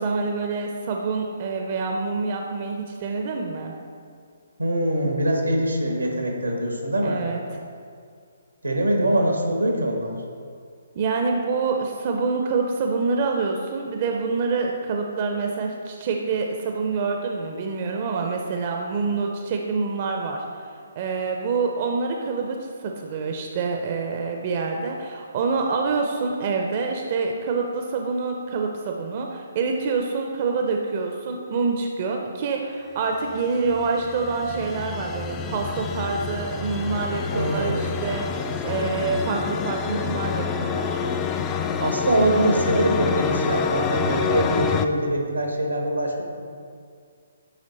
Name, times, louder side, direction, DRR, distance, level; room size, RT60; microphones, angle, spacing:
voice 1, 0.0-3.7 7.0-7.4 11.0-20.4 21.0-41.0, right 4 dB, 40° right, 2 dB, 0.5 m, -26 dB
voice 2, 4.6-7.2 8.6-10.1 37.3-37.8 41.8-46.2, right 1 dB, 90° right, 2 dB, 1.1 m, -23 dB
sound 1, 33.3-44.9, left 6 dB, 20° left, 0.3 m, -28 dB
9.1 x 3.1 x 4.1 m, 2.3 s
figure-of-eight pair, 135°, 0 cm